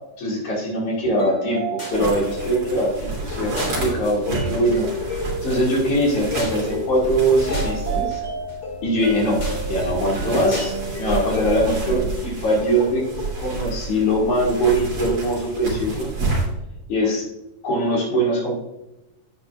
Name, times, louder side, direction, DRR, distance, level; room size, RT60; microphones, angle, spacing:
voice 1, 0.2-4.9 5.4-8.2 8.8-9.4 9.7-10.7 11.0-13.0 13.3-16.1 16.9-17.3 17.6-18.6, right 1 dB, 65° left, -2 dB, 3.7 m, -22 dB
sound 1, 1.2-13.3, equal, 35° left, 3.0 m, -31 dB
sound 2, 1.9-16.5, right 3 dB, 45° right, 3.8 m, -30 dB
10.5 x 9.1 x 2.5 m, 0.94 s
omnidirectional pair, 3.8 m